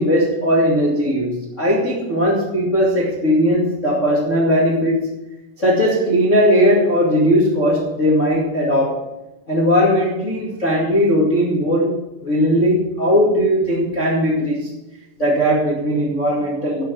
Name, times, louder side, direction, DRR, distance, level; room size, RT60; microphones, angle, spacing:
voice 1, 0.0-5.1 5.6-9.0 9.5-14.7 15.2-16.8, equal, 75° left, -5 dB, 0.7 m, -18 dB
12.0 x 6.1 x 7.7 m, 0.97 s
omnidirectional pair, 5.6 m